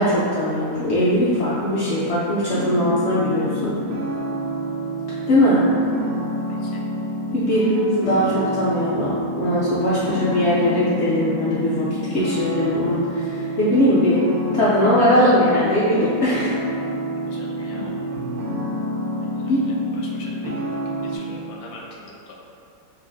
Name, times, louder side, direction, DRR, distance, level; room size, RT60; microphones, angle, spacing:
voice 1, 0.0-3.7 5.3-5.6 7.3-14.2 14.5-16.5 19.5-19.6, equal, 65° left, -8 dB, 0.7 m, -20 dB
sound 1, 2.4-21.2, equal, 75° right, 1.2 m, -28 dB
voice 2, 17.3-17.9 19.2-19.5 20.0-22.3, left 3 dB, 85° left, -2 dB, 1.2 m, -42 dB
5.4 x 2.5 x 2.6 m, 2.6 s
omnidirectional pair, 1.6 m